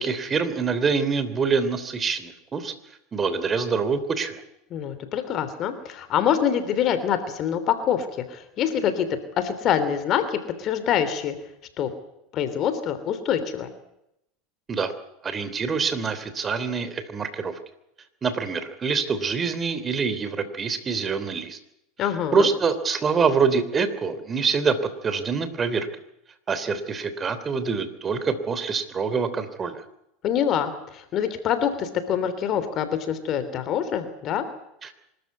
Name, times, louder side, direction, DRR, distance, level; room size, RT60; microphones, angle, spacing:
voice 1, 0.0-2.7 3.1-4.4 14.7-14.9 15.2-17.5 18.2-21.6 22.0-24.8 25.0-25.9 26.5-29.8 34.8-34.9, right 5 dB, 25° right, 12 dB, 3.2 m, -25 dB
voice 2, 4.7-11.3 11.8-11.9 12.3-13.7 22.0-22.5 30.2-34.4, left 9 dB, 45° left, 11 dB, 3.2 m, -25 dB
24.5 x 13.5 x 9.5 m, 0.82 s
supercardioid pair, 110°, 0 cm